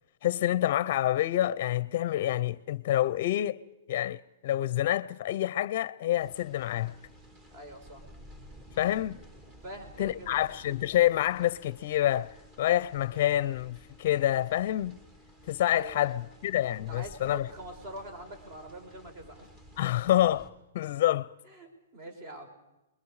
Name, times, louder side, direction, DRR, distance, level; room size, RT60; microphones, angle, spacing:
voice 1, 0.2-3.6 3.9-6.9 8.8-9.2 10.0-15.0 15.4-17.5 19.8-21.3, left 13 dB, 45° left, 0.6 m, -27 dB
sound 1, 6.2-20.5, equal, 25° right, 2.6 m, -53 dB
voice 2, 7.5-8.1 9.6-10.5 15.7-16.2 16.8-19.5 21.5-22.5, right 1 dB, 40° right, 4.5 m, -44 dB
29.0 x 21.5 x 4.9 m
hypercardioid pair, 155°, 0 cm